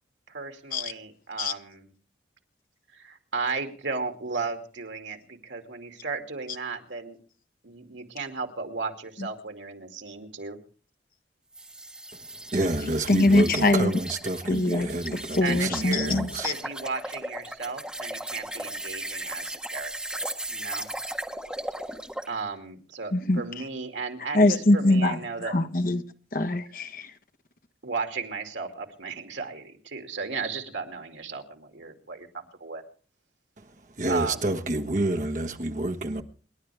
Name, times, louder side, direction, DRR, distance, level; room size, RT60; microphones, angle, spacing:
voice 1, 0.3-1.9 2.9-7.2 7.6-10.6 15.4-16.2 16.4-19.9 20.5-20.9 22.3-25.5 27.8-32.8 34.1-34.5, right 4 dB, 85° right, 2.4 m, -35 dB
sound 1, 11.5-22.3, right 1 dB, 5° right, 1.4 m, -37 dB
voice 2, 12.5-16.5 33.6-33.7 34.0-36.2, right 1 dB, 40° right, 1.3 m, -28 dB
voice 3, 13.1-13.9 14.5-16.5 23.1-23.4 24.3-25.2 25.4-26.0 26.3-27.1, left 2 dB, 50° left, 1.2 m, -23 dB
28.0 x 11.0 x 3.4 m
head